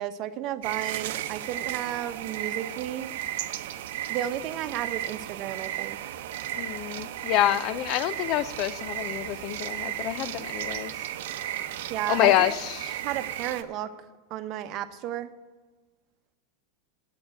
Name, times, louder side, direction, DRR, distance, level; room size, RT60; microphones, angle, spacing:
voice 1, 0.0-3.1 4.1-6.0 11.9-12.5 13.0-13.9 14.3-15.3, right 11 dB, 45° right, 0.9 m, -33 dB
sound 1, 0.6-13.6, right 12 dB, 75° right, 0.7 m, -34 dB
voice 2, 6.5-11.0 12.1-13.0, left 13 dB, 45° left, 0.5 m, -27 dB
8.7 x 7.7 x 8.8 m
supercardioid pair, 135°, 0 cm